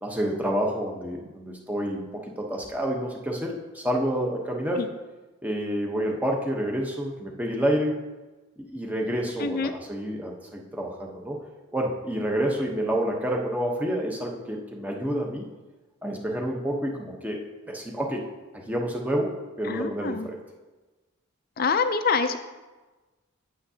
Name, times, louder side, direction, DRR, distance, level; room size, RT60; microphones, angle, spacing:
voice 1, 0.0-4.8 5.4-7.9 8.7-11.4 11.7-15.4 16.0-18.2 18.7-20.4, equal, 5° right, -1 dB, 0.9 m, -28 dB
voice 2, 9.4-9.7 19.6-20.3 21.6-22.4, left 5 dB, 45° left, 10 dB, 0.5 m, -25 dB
9.0 x 8.7 x 2.8 m, 1.2 s
head